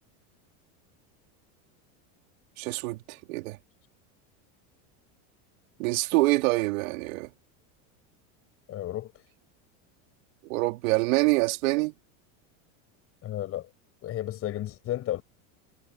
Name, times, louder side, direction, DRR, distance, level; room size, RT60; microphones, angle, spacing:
voice 1, 2.6-3.6 5.8-7.3 10.4-11.9, right 22 dB, 70° right, 3.7 m, -26 dB
voice 2, 8.7-9.3 13.2-13.7 14.0-15.2, left 13 dB, 35° left, 6.6 m, -33 dB
supercardioid pair, 160°, 42 cm